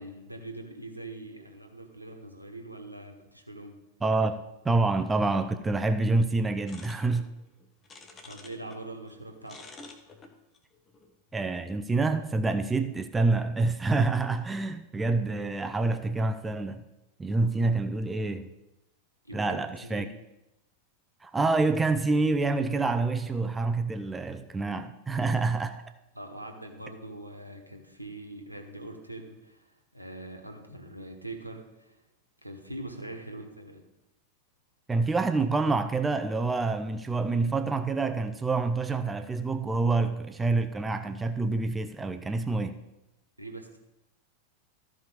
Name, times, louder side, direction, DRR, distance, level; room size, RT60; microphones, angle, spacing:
voice 1, 0.0-3.7 8.2-9.6 19.2-20.1 26.1-32.0 32.4-33.8 43.4-43.8, right 2 dB, 85° right, 3 dB, 1.4 m, -43 dB
voice 2, 4.0-4.4 4.6-7.3 11.3-16.8 17.2-18.5 19.3-20.1 21.2-25.8 34.9-42.8, right 3 dB, 10° right, 9 dB, 0.6 m, -27 dB
sound 1, 6.7-8.8 9.1-11.6, left 3 dB, 20° left, 1.2 m, -50 dB
14.0 x 5.0 x 5.1 m, 0.93 s
figure-of-eight pair, 90°, 0 cm